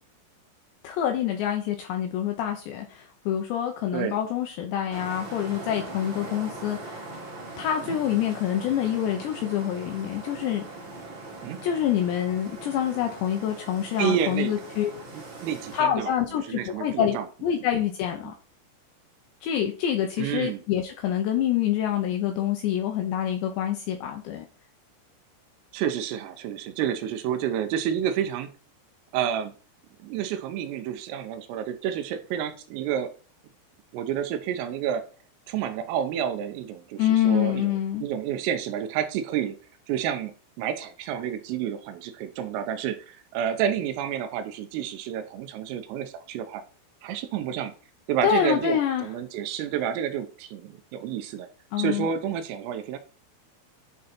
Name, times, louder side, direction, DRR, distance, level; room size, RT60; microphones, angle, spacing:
voice 1, 0.8-7.2 7.6-10.6 11.6-14.9 15.7-18.3 19.4-24.5 37.0-38.1 48.2-49.1 51.7-52.1, left 10 dB, 85° left, 4 dB, 2.6 m, -26 dB
sound 1, 4.9-15.8, right 2 dB, 45° right, 1.6 m, -41 dB
voice 2, 14.0-14.5 15.4-16.1 16.5-17.3 20.2-20.6 25.7-28.5 29.1-29.5 30.0-33.1 33.9-35.0 35.5-39.6 39.9-40.3 40.6-46.6 47.0-47.7 48.1-51.5 51.8-53.0, right 9 dB, 80° right, 8 dB, 3.5 m, -29 dB
10.5 x 3.9 x 4.2 m, 0.37 s
omnidirectional pair, 6.0 m